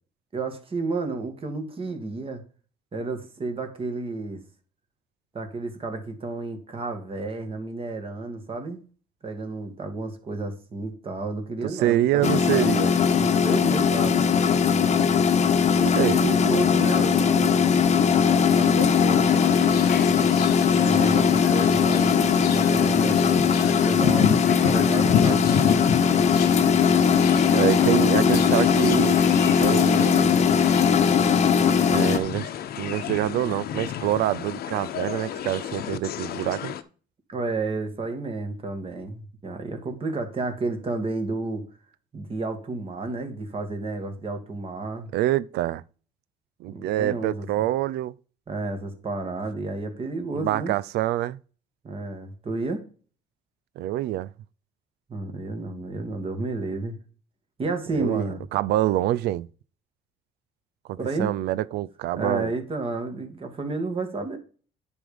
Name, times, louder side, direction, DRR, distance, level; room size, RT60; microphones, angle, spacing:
voice 1, 0.3-2.4 2.9-4.4 5.3-8.8 9.2-12.7 13.2-14.2 16.1-19.5 20.8-23.5 23.8-25.8 37.3-41.6 42.1-45.1 46.7-47.5 48.5-50.7 51.8-52.8 55.1-56.9 57.6-58.4 61.0-61.3 62.2-64.4, right 3 dB, 35° right, 2.3 m, -31 dB
voice 2, 11.6-12.9 15.7-16.2 27.5-29.2 29.5-30.3 31.9-32.5 32.8-36.7 45.1-45.8 46.6-48.1 50.4-51.4 53.8-54.3 57.9-59.5 60.9-62.5, right 14 dB, 75° right, 0.5 m, -26 dB
sound 1, 12.2-32.2, left 7 dB, 40° left, 1.1 m, -20 dB
sound 2, 19.2-36.8, left 9 dB, 65° left, 1.0 m, -31 dB
9.8 x 5.3 x 5.2 m
cardioid pair, 110°, 17 cm